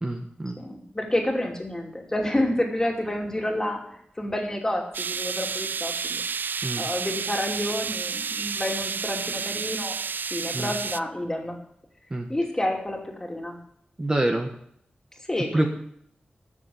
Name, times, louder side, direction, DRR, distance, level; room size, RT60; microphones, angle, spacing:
voice 1, 0.0-0.6 6.6-6.9 10.5-10.7 12.1-12.3 14.0-14.5 15.5-15.7, right 1 dB, 25° right, 3 dB, 1.3 m, -26 dB
voice 2, 0.6-6.2 6.8-10.0 10.3-11.6 12.3-13.6 15.3-15.7, left 1 dB, 15° left, 1 dB, 2.8 m, -29 dB
sound 1, 4.9-11.0, right 6 dB, 70° right, 0.4 m, -30 dB
13.5 x 7.0 x 7.8 m, 0.68 s
wide cardioid pair, 125°, 3 cm